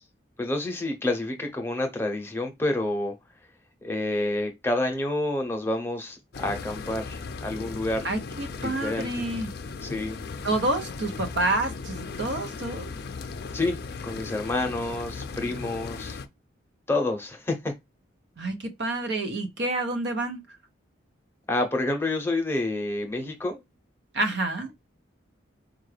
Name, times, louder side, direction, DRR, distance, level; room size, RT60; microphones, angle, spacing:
voice 1, 0.4-3.1 3.8-8.1 8.6-9.1 9.8-10.2 13.5-16.2 16.9-17.7 21.5-23.6, left 2 dB, 10° left, 0.8 m, -28 dB
sound 1, 6.3-16.3, left 4 dB, 50° left, 0.4 m, -37 dB
voice 2, 8.0-9.5 10.4-12.9 18.4-20.4 24.1-24.8, right 2 dB, 60° right, 0.7 m, -28 dB
4.6 x 2.3 x 3.3 m
head